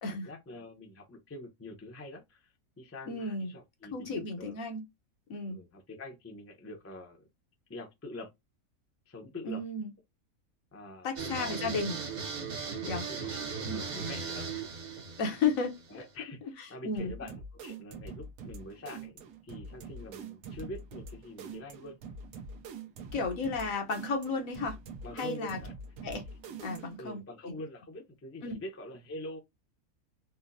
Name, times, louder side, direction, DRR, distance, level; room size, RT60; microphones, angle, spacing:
voice 1, 0.0-4.6 5.5-7.2 7.7-8.3 9.1-9.6 10.7-11.9 12.6-14.5 15.9-22.0 25.0-25.7 27.0-29.4, left 1 dB, 20° left, 0.4 m, -45 dB
voice 2, 3.1-3.5 3.9-4.8 5.3-5.6 9.4-9.9 11.0-12.0 12.9-13.1 13.7-13.8 15.2-16.0 16.8-17.1 23.1-24.8 25.1-25.6 26.0-26.2 26.6-27.2 28.4-28.6, left 4 dB, 75° left, 1.2 m, -33 dB
sound 1, 11.2-16.1, right 5 dB, 45° right, 0.6 m, -38 dB
sound 2, 17.0-27.1, right 4 dB, 90° right, 1.1 m, -45 dB
4.2 x 2.0 x 2.5 m
omnidirectional pair, 1.5 m